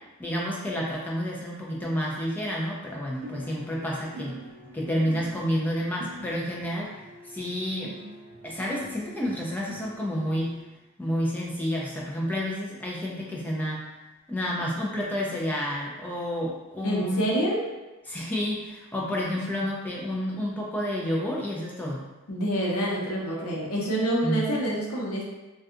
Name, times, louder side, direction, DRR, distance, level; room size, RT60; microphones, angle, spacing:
voice 1, 0.2-4.4 4.7-6.9 7.3-7.9 8.4-10.5 11.0-13.8 14.3-17.2 18.1-22.0 24.2-24.4, equal, 10° left, -3 dB, 0.3 m, -30 dB
sound 1, 3.2-10.6, equal, 65° right, 0.4 m, -44 dB
voice 2, 16.8-17.6 19.5-19.6 22.3-25.2, right 1 dB, 80° left, -3 dB, 0.7 m, -27 dB
2.6 x 2.3 x 2.4 m, 1.1 s
head